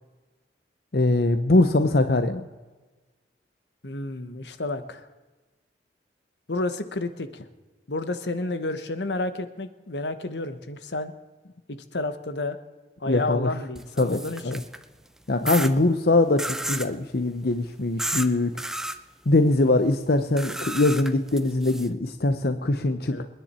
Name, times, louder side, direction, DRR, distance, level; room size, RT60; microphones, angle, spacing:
voice 1, 0.9-2.4 13.1-13.5 14.0-14.6 15.3-18.5 19.3-23.2, left 2 dB, 60° left, 9 dB, 0.8 m, -22 dB
voice 2, 3.8-5.1 6.5-7.4 7.9-11.1 11.7-12.6 13.0-14.6 23.1-23.3, left 2 dB, 80° left, 10 dB, 1.2 m, -31 dB
sound 1, 13.8-14.8 15.5-15.7 16.4-16.9 18.0-18.3 18.6-19.0 20.4-21.9, right 1 dB, 5° right, 0.6 m, -31 dB
27.5 x 10.5 x 4.4 m, 1.3 s
head